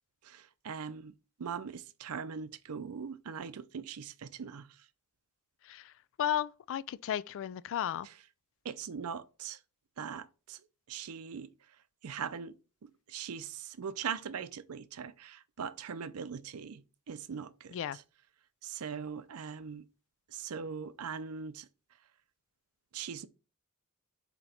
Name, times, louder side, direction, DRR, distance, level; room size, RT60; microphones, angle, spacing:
voice 1, 0.2-1.1 1.4-4.9 8.0-8.1 8.6-9.6 10.0-11.8 12.0-18.0 18.6-19.9 20.3-21.7 22.9-23.3, right 6 dB, 80° right, 0.5 m, -41 dB
voice 2, 6.2-8.1 17.7-18.0, left 10 dB, 60° left, 0.3 m, -34 dB
7.6 x 3.0 x 4.2 m
head